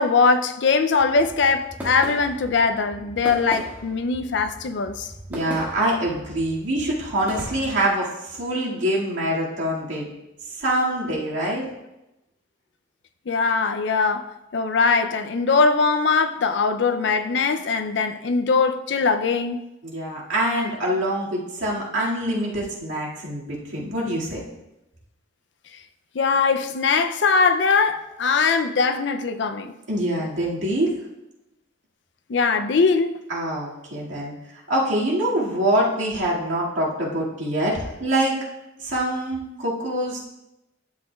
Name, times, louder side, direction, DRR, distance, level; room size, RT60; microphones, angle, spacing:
voice 1, 0.0-5.1 13.3-19.6 26.1-29.7 32.3-33.2, left 4 dB, 65° left, 0.5 m, -21 dB
sound 1, 0.8-7.8, equal, 10° right, 1.7 m, -38 dB
voice 2, 5.3-10.1 10.5-11.7 19.8-24.4 29.9-31.0 33.3-34.3 34.7-38.4 38.8-40.2, right 1 dB, 80° right, 2.1 m, -25 dB
10.5 x 7.3 x 2.3 m
head